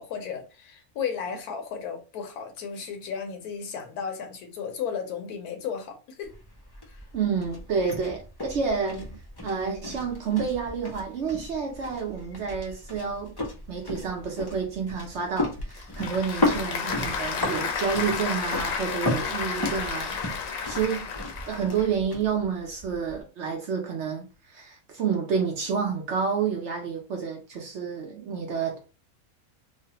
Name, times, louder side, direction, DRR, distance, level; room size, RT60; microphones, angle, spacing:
voice 1, 0.0-6.4 8.9-9.1, left 7 dB, 85° left, 1.2 m, -34 dB
sound 1, 6.2-23.2, left 1 dB, 40° left, 0.3 m, -35 dB
voice 2, 7.1-9.0 9.4-13.3 13.7-20.1 20.7-21.1 21.5-24.3 24.5-28.8, right 6 dB, 60° right, 0.8 m, -29 dB
Applause / Crowd, 15.4-21.9, left 6 dB, 70° left, 1.0 m, -32 dB
3.1 x 2.1 x 2.8 m
omnidirectional pair, 1.6 m